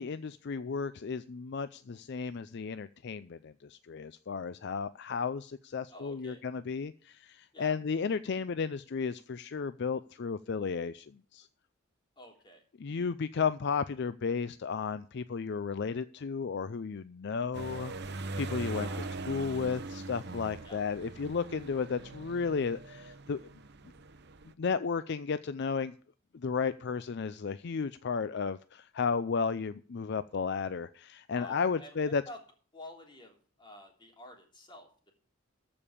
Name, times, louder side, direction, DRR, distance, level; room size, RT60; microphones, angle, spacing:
voice 1, 0.0-11.5 12.8-18.9 19.3-23.4 24.6-25.9 26.3-32.2, left 5 dB, 60° left, 0.5 m, -33 dB
voice 2, 5.9-6.4 7.5-7.8 12.1-12.6 18.7-19.2 20.6-20.8 31.3-32.4 32.7-35.1, left 1 dB, 25° left, 3.4 m, -50 dB
sound 1, 17.5-24.5, right 3 dB, 55° right, 0.8 m, -41 dB
14.0 x 5.3 x 8.5 m
head